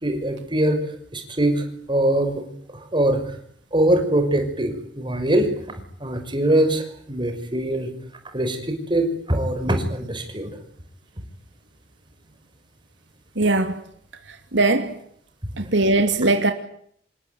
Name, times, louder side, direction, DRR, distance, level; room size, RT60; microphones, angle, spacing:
voice 1, 0.0-0.8 1.1-2.4 2.9-3.2 3.7-5.5 6.0-7.9 8.3-10.5, right 1 dB, 25° right, 6.0 m, -22 dB
voice 2, 13.3-13.8 14.3-15.0 15.6-16.5, right 2 dB, 85° right, 2.9 m, -20 dB
28.0 x 21.5 x 9.7 m
head